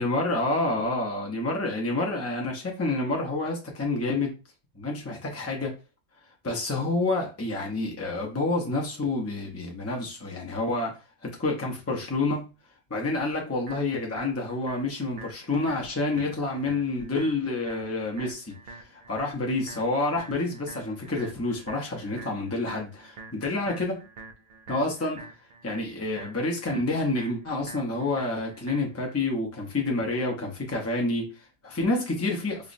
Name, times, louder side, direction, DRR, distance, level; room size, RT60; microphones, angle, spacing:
voice 1, 0.0-4.3 4.7-5.7 6.4-10.9 11.2-12.5 12.9-24.0 24.7-25.3 25.6-32.7, left 2 dB, 25° left, 0.3 m, -28 dB
sound 1, 13.2-29.2, right 3 dB, 60° right, 0.4 m, -46 dB
5.3 x 2.0 x 2.5 m
omnidirectional pair, 1.4 m